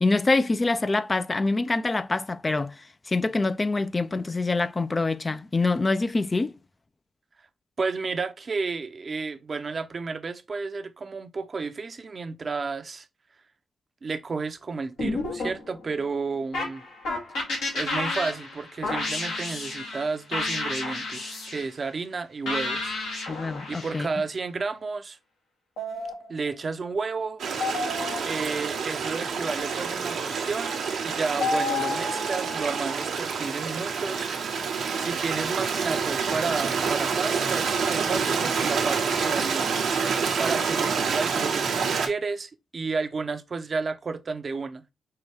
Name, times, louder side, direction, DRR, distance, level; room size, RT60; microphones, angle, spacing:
voice 1, 0.0-6.5 23.3-24.1, left 3 dB, 35° left, 0.4 m, -25 dB
voice 2, 7.8-13.1 14.0-16.8 17.7-22.9 23.3-23.4 23.7-25.2 26.3-27.7 28.2-34.3 35.0-39.7 40.4-44.9, right 4 dB, 50° right, 0.6 m, -32 dB
sound 1, 15.0-16.0 16.5-20.0 20.3-21.6 22.5-24.0 25.8-26.7 27.6-28.6 29.6-29.8 30.6-30.8 31.4-33.1, left 2 dB, 90° left, 1.8 m, -31 dB
Stream, 27.4-42.1, right 5 dB, 80° right, 0.9 m, -27 dB
5.5 x 2.2 x 3.4 m
supercardioid pair, 45°, 0 cm